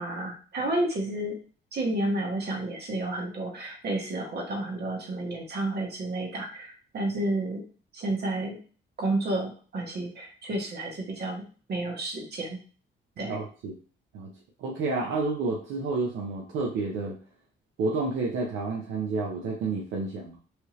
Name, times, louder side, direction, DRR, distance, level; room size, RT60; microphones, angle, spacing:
voice 1, 0.0-1.3 1.7-7.6 7.9-8.6 9.0-11.4 11.7-12.6 13.2-13.4, right 2 dB, 55° right, 0 dB, 1.5 m, -31 dB
voice 2, 13.2-13.7 14.1-14.3 14.6-17.1 17.8-20.4, right 3 dB, 85° right, -2 dB, 0.8 m, -30 dB
3.3 x 2.8 x 3.1 m, 0.39 s
cardioid pair, 90°, 20 cm